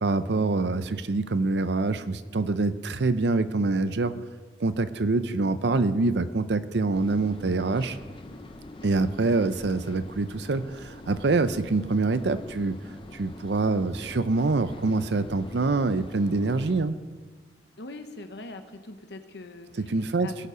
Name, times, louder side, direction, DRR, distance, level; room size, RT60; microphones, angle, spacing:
voice 1, 0.0-4.1 4.6-8.0 8.8-12.8 13.1-17.0 19.8-20.3, right 3 dB, 65° right, 13 dB, 0.6 m, -25 dB
sound 1, 6.9-16.8, left 1 dB, 25° left, 0.6 m, -45 dB
voice 2, 17.8-20.5, left 2 dB, 65° left, 7 dB, 1.0 m, -42 dB
18.5 x 6.8 x 5.0 m, 1.4 s
head